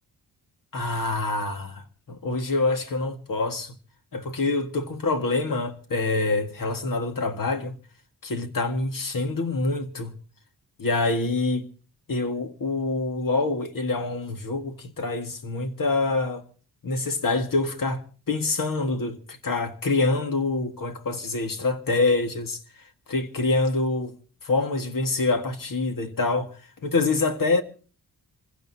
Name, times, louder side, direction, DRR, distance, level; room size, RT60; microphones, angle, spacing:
voice 1, 0.7-3.7 4.1-7.8 8.3-10.2 10.8-11.7 12.1-16.4 16.8-22.6 23.1-24.1 24.4-26.5 26.8-27.6, left 3 dB, 55° left, 1.8 m, -26 dB
27.5 x 15.5 x 2.8 m
wide cardioid pair, 130°, 39 cm